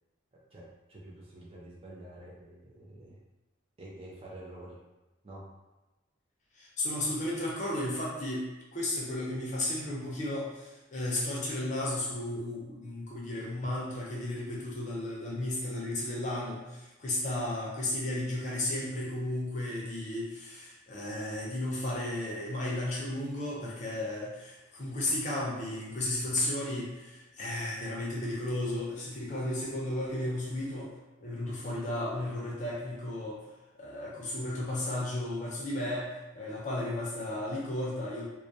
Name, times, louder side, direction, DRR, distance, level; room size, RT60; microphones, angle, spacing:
voice 1, 0.5-3.2 3.8-4.8 5.2-5.4, right 1 dB, 30° right, -5 dB, 0.5 m, -48 dB
voice 2, 6.6-30.9 31.2-33.4 33.8-38.3, left 1 dB, 35° left, -4 dB, 0.5 m, -34 dB
2.2 x 2.1 x 2.7 m, 1.1 s
head